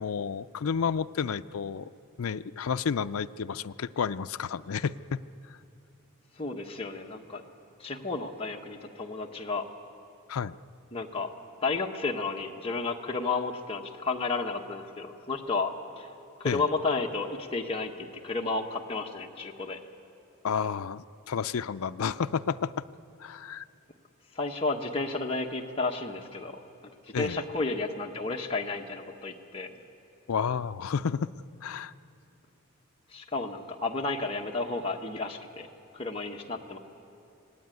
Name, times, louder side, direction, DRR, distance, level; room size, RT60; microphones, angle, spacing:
voice 1, 0.0-1.9 2.2-5.2 5.5-5.6 10.3-10.5 16.4-16.7 20.4-22.8 23.2-23.7 27.1-27.4 30.3-31.3 31.6-31.9, left 6 dB, 80° left, 11 dB, 0.5 m, -31 dB
voice 2, 6.4-7.4 7.8-9.6 10.9-11.3 11.6-16.1 16.4-19.8 24.3-26.6 27.2-29.7 33.1-35.7 35.9-36.8, left 3 dB, 25° left, 1 dB, 1.4 m, -32 dB
25.5 x 18.5 x 9.2 m, 2.7 s
head